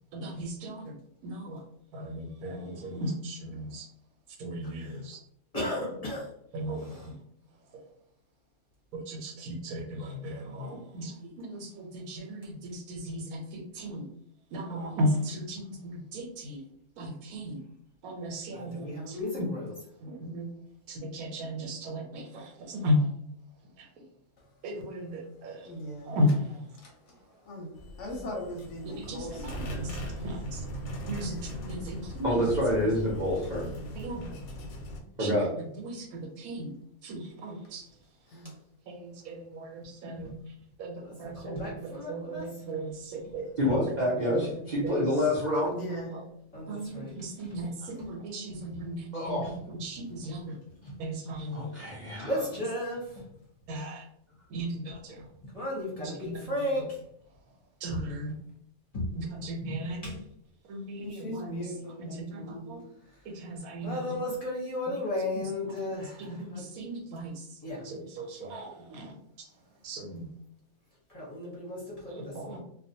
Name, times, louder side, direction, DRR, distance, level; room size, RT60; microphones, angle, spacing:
voice 1, 0.1-1.0 1.2-1.6 1.9-3.9 4.3-5.2 6.5-7.9 8.9-14.1 14.5-16.7 17.0-17.6 18.0-19.5 20.0-23.2 23.7-24.1 24.6-27.5 28.1-28.3 28.8-32.5 32.8-32.9 33.9-34.7 35.2-36.7 37.0-38.5 38.9-45.1 45.8-46.2 46.7-50.6 51.0-52.2 53.7-54.1 54.5-55.3 56.0-56.7 57.3-58.3 59.1-60.2 60.6-64.2 64.8-64.9 65.3-70.3 72.1-72.6, equal, 85° right, 2 dB, 1.1 m, -36 dB
voice 2, 5.5-6.3 18.5-19.6 41.2-42.4 46.5-47.1 50.9-51.0 52.1-53.3 55.4-56.9 58.9-59.1 59.7-59.8 60.0-60.1 63.8-66.6 67.6-67.8 71.1-72.6, left 1 dB, 35° left, -6 dB, 0.7 m, -34 dB
voice 3, 25.6-26.2 26.8-29.9 31.3-31.4 38.3-38.5 45.7-46.1 61.0-62.8, left 1 dB, 65° left, 0 dB, 0.8 m, -40 dB
sound 1, 27.7-35.0, right 1 dB, 90° left, 1.1 m, -39 dB
voice 4, 32.2-33.7 35.2-35.5 43.6-45.7 49.1-49.5 51.8-52.3, left 1 dB, 55° right, -6 dB, 0.5 m, -27 dB
2.4 x 2.1 x 2.6 m, 0.71 s
omnidirectional pair, 1.5 m